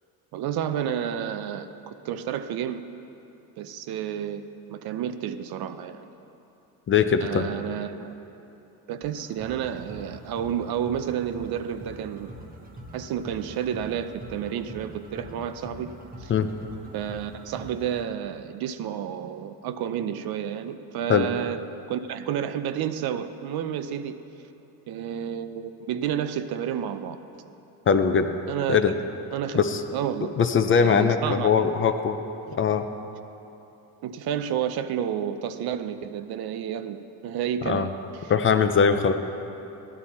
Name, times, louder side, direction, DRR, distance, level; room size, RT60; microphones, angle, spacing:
voice 1, 0.3-2.8 3.6-6.1 7.2-8.1 8.9-12.3 12.9-15.9 16.2-16.3 16.9-21.6 21.9-24.2 24.9-27.2 28.5-29.0 29.3-30.3 30.8-31.7 32.5-32.6 34.0-37.9 38.2-38.3, right 9 dB, 65° right, 11 dB, 0.6 m, -30 dB
voice 2, 6.9-7.5 16.3-16.5 21.1-21.3 27.9-28.3 28.7-28.9 29.5-29.8 30.4-32.2 32.5-32.8 37.6-37.9 38.3-39.1, left 6 dB, 30° left, 8 dB, 0.5 m, -21 dB
sound 1, 9.0-18.0, equal, 20° right, 1.0 m, -44 dB
14.5 x 11.0 x 4.2 m, 2.9 s
cardioid pair, 145°, 40 cm